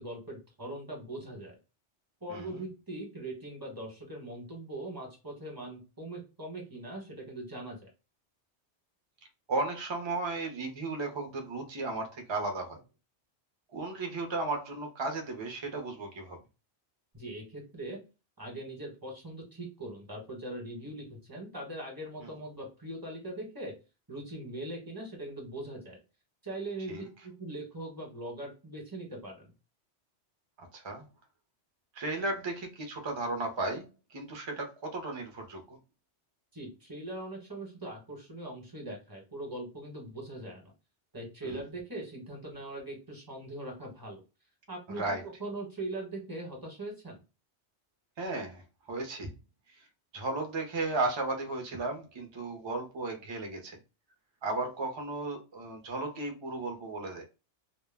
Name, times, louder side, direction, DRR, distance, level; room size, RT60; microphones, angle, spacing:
voice 1, 0.0-1.6 2.2-7.9 17.1-18.0 18.4-23.7 24.1-26.0 26.4-29.5 36.5-40.7 41.1-44.2 44.7-45.0 45.4-47.2, right 1 dB, 20° right, 0.8 m, -41 dB
voice 2, 2.3-2.7 9.5-12.8 13.7-16.4 22.2-22.3 26.9-27.0 30.6-31.0 31.9-35.8 41.4-41.7 44.9-45.3 48.2-49.3 50.1-53.8 54.4-57.2, right 2 dB, 35° right, 0.4 m, -35 dB
2.2 x 2.0 x 3.2 m
omnidirectional pair, 1.2 m